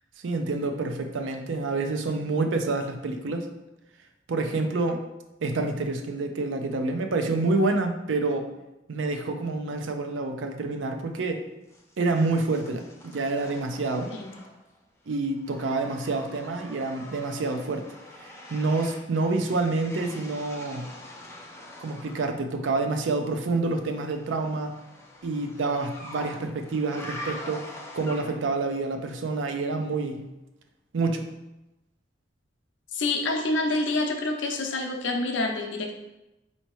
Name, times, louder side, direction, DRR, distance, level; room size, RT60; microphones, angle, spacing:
voice 1, 0.2-3.5 4.3-5.0 5.4-8.5 8.9-11.4 12.0-14.1 15.1-17.9 18.2-20.9 21.8-24.8 25.2-27.6 27.9-30.2 30.9-31.2, right 3 dB, 80° right, 5 dB, 0.5 m, -28 dB
sound 1, 11.7-14.8 15.1-22.3 23.9-28.6, left 1 dB, 15° left, 0.6 m, -44 dB
voice 2, 32.9-36.0, left 2 dB, 75° left, 3 dB, 0.6 m, -27 dB
4.4 x 2.8 x 3.0 m, 0.97 s
head